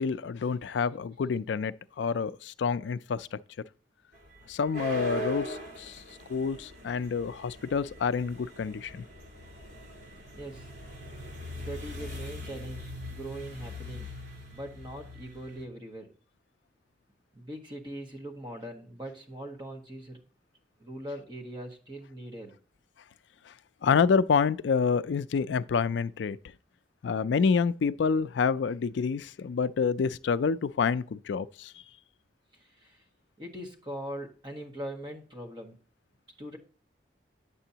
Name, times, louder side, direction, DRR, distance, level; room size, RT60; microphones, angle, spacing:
voice 1, 0.0-3.4 4.5-5.9 6.3-8.9 23.8-26.4 27.0-31.7, left 5 dB, 90° left, 0.4 m, -28 dB
sound 1, 4.1-15.6, equal, 75° right, 3.3 m, -41 dB
voice 2, 10.4-10.7 11.6-14.1 14.5-16.1 17.3-20.2 20.8-22.5 32.8-33.0 33.4-35.8 36.4-36.6, right 1 dB, 25° right, 1.4 m, -41 dB
8.9 x 6.8 x 2.8 m
head